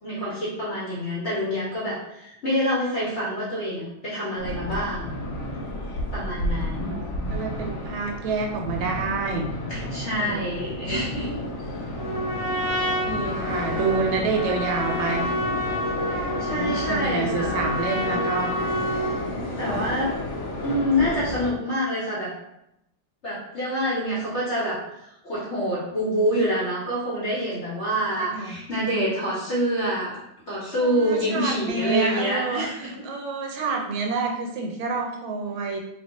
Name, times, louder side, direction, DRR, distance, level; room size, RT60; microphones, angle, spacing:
voice 1, 0.0-5.1 6.1-7.0 9.7-11.4 16.0-17.6 19.6-20.1 20.6-22.3 23.2-30.2 30.5-33.0, equal, 55° left, -8 dB, 0.8 m, -27 dB
sound 1, 4.4-21.5, left 1 dB, 80° left, 0.7 m, -31 dB
voice 2, 6.7-9.5 10.2-11.0 13.1-15.3 16.0-18.7 19.4-19.8 28.1-28.6 30.8-35.8, right 4 dB, 85° right, 2 dB, 1.5 m, -29 dB
Trumpet, 12.0-19.3, equal, 65° right, 0.7 m, -29 dB
3.1 x 2.2 x 3.6 m, 0.83 s
omnidirectional pair, 2.2 m